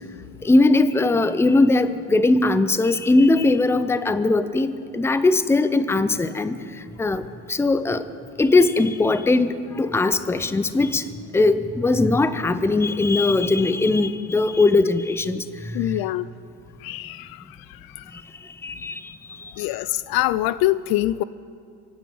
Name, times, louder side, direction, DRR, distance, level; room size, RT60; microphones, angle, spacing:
voice 1, 0.4-6.6 7.0-7.2 7.5-8.0 8.4-11.0 11.3-15.4 15.8-16.0 18.6-19.0, left 2 dB, 5° left, 12 dB, 0.5 m, -19 dB
voice 2, 15.7-16.3 16.8-17.4 18.0-18.1 19.6-21.2, left 15 dB, 60° left, 17 dB, 0.5 m, -24 dB
24.0 x 9.6 x 5.5 m, 2.5 s
supercardioid pair, 95°, 43 cm